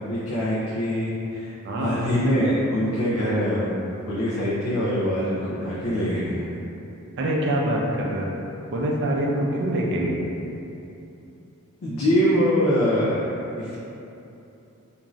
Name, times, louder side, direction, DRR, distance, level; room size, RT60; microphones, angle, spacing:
voice 1, 0.0-3.8 4.1-6.5 11.8-13.3 13.6-13.8, equal, 75° left, -7 dB, 0.4 m, -24 dB
voice 2, 1.6-2.0 7.2-8.3 8.7-10.3, right 1 dB, 50° right, -2 dB, 0.4 m, -24 dB
2.5 x 2.5 x 3.0 m, 2.8 s
head